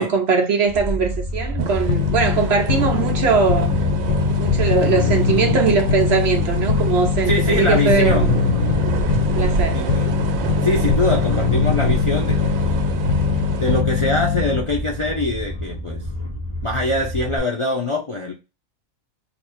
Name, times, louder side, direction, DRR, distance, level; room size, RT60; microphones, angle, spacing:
voice 1, 0.0-3.8 4.4-8.4 9.2-9.8, right 5 dB, 65° right, 0.7 m, -20 dB
sound 1, 0.7-17.4, left 1 dB, 25° left, 0.9 m, -30 dB
sound 2, 1.6-13.8, right 6 dB, 85° right, 1.0 m, -28 dB
sound 3, 1.9-14.8, left 7 dB, 85° left, 1.0 m, -21 dB
voice 2, 7.3-8.3 9.7-10.2 10.6-12.7 13.6-16.0 16.6-18.3, left 1 dB, 40° left, 0.4 m, -23 dB
2.6 x 2.5 x 4.2 m
omnidirectional pair, 1.4 m